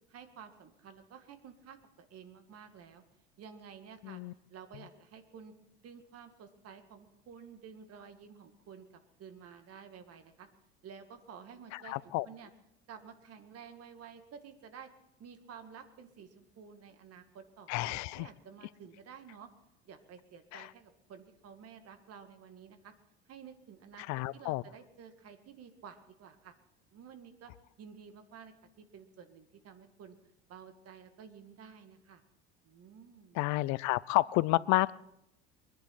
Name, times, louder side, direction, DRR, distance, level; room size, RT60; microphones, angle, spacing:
voice 1, 0.1-3.0 3.4-4.2 4.5-5.5 5.8-8.9 9.2-10.5 10.8-12.5 12.9-14.9 15.2-19.5 19.9-22.9 23.3-26.5 26.9-27.5 27.8-30.2 30.5-32.2 32.6-33.4, right 7 dB, 45° right, 8 dB, 2.1 m, -52 dB
voice 2, 4.0-4.3 11.7-12.3 17.7-18.3 20.5-20.7 24.1-24.6 33.3-34.9, left 20 dB, 55° left, 22 dB, 0.6 m, -30 dB
23.5 x 10.5 x 4.5 m, 0.82 s
hypercardioid pair, 70°, 33 cm